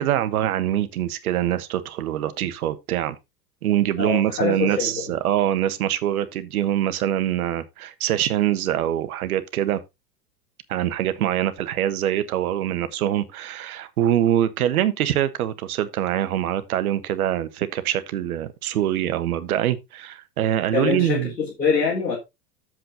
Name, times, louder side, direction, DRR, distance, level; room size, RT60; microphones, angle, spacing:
voice 1, 0.0-3.2 3.6-9.8 10.7-21.3, right 11 dB, 60° right, 1.4 m, -24 dB
voice 2, 4.0-5.1 20.7-22.2, left 6 dB, 80° left, 3.7 m, -24 dB
8.0 x 7.5 x 3.9 m
figure-of-eight pair, 90°, 49 cm